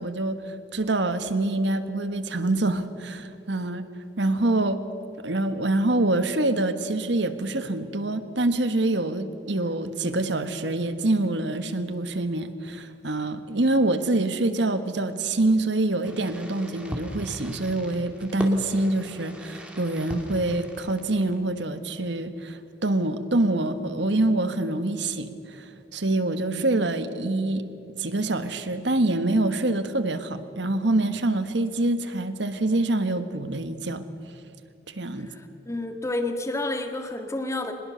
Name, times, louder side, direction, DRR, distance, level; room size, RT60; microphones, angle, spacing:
voice 1, 0.0-3.8 4.2-4.8 5.2-27.6 28.0-34.0 34.9-35.3, right 2 dB, 70° right, 11 dB, 1.4 m, -25 dB
Fireworks, 16.0-21.6, equal, 5° right, 2.5 m, -39 dB
voice 2, 35.3-37.7, left 2 dB, 15° left, 6 dB, 1.6 m, -30 dB
23.5 x 20.5 x 6.8 m, 2.7 s
head